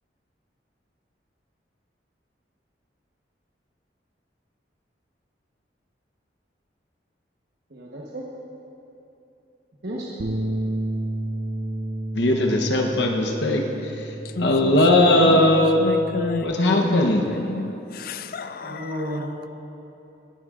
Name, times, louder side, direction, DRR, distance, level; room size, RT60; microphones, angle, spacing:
voice 1, 7.7-8.2 9.8-10.1 18.6-19.5, equal, 60° right, 1.1 m, -32 dB
Bass guitar, 10.2-16.4, right 1 dB, 45° right, 0.7 m, -31 dB
voice 2, 12.1-13.6 14.4-15.8 16.4-17.2, left 1 dB, 75° left, 0.9 m, -19 dB
voice 3, 14.3-19.2, left 3 dB, 50° left, 0.4 m, -30 dB
19.0 x 11.0 x 2.5 m
head